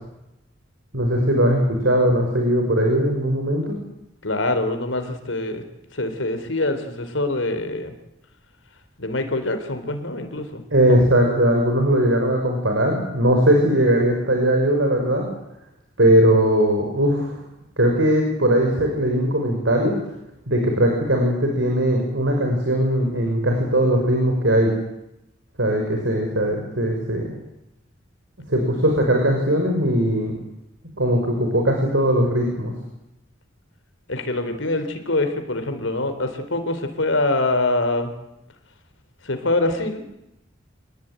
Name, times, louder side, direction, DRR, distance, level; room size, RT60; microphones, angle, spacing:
voice 1, 0.9-3.8 10.7-15.3 16.0-17.4 17.8-20.0 20.5-24.7 25.6-27.3 28.5-30.4 31.0-32.7, right 1 dB, 75° right, 2 dB, 6.0 m, -19 dB
voice 2, 4.2-5.6 5.9-7.9 9.0-11.0 34.1-38.1 39.2-40.0, left 2 dB, 85° left, 8 dB, 3.9 m, -24 dB
26.0 x 20.0 x 9.2 m, 0.87 s
head